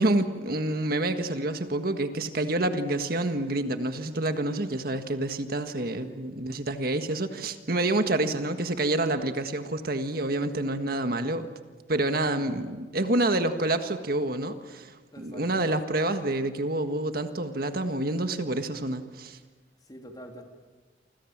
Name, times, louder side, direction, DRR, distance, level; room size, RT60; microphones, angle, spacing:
voice 1, 0.0-11.5 11.9-19.4, right 2 dB, 55° right, 7 dB, 1.7 m, -28 dB
voice 2, 12.3-12.7 15.1-15.8 19.8-20.4, equal, 25° left, 3 dB, 3.3 m, -45 dB
29.0 x 26.0 x 7.4 m, 1.3 s
head